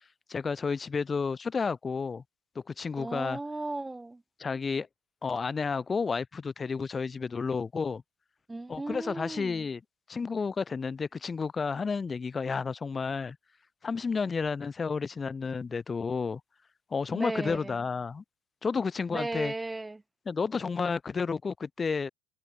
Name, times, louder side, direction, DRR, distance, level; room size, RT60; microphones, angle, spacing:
voice 1, 0.3-2.2 2.7-3.4 4.4-4.9 5.2-8.0 8.7-9.8 10.1-13.4 13.8-16.4 16.9-18.2 18.6-19.5 20.3-22.1, left 5 dB, 25° left, 0.4 m, -31 dB
voice 2, 3.0-4.2 8.5-9.7 17.1-17.8 19.1-20.0, right 2 dB, 10° right, 0.7 m, -36 dB
figure-of-eight pair, 70°, 0 cm